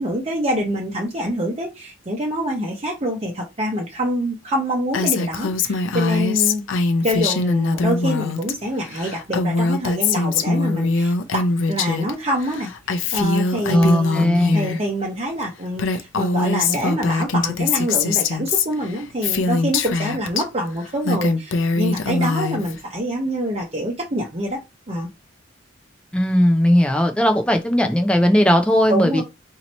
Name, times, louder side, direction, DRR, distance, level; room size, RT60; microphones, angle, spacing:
voice 1, 0.0-6.6 7.0-11.4 11.7-14.3 14.5-24.6 24.9-25.1 28.9-29.2, equal, 30° right, 0.8 m, -25 dB
Female speech woman speaking, 4.9-8.5 8.8-12.1 12.4-14.8 15.4-15.5 15.7-20.4 20.9-22.8, left 3 dB, 90° left, 0.5 m, -22 dB
voice 2, 13.7-14.7 26.1-29.2, equal, 5° left, 0.5 m, -17 dB
2.9 x 2.7 x 4.2 m
head